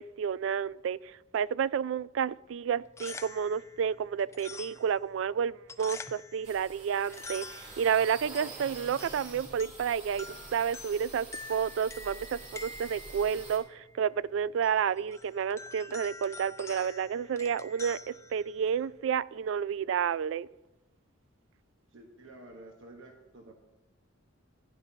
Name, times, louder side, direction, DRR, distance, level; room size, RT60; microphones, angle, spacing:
voice 1, 0.0-10.3 10.5-20.5, right 7 dB, 70° right, 0.3 m, -30 dB
sound 1, 2.8-19.0, left 3 dB, 15° left, 0.4 m, -48 dB
sound 2, 6.4-13.6, right 3 dB, 40° right, 2.9 m, -47 dB
voice 2, 21.9-23.5, right 2 dB, 85° right, 1.2 m, -50 dB
16.0 x 10.5 x 2.8 m
head